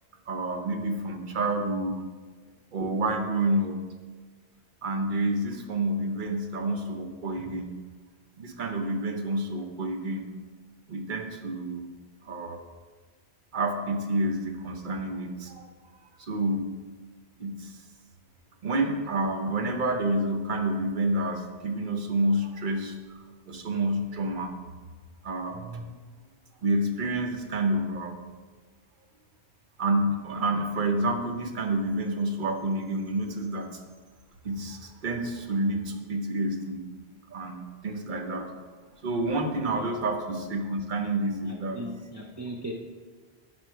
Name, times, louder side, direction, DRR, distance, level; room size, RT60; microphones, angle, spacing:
voice 1, 0.3-2.0 2.7-3.8 4.8-7.7 8.4-10.3 10.9-11.9 12.2-12.6 13.5-15.7 16.0-16.7 17.4-17.8 18.6-23.2 23.5-24.6 25.2-26.0 26.6-28.2 29.8-33.8 34.4-36.9 37.3-38.5 39.0-41.8, right 1 dB, 50° right, 4 dB, 1.0 m, -29 dB
voice 2, 41.5-42.7, right 1 dB, 20° right, 0 dB, 0.5 m, -38 dB
11.0 x 4.3 x 4.6 m, 1.4 s
omnidirectional pair, 1.1 m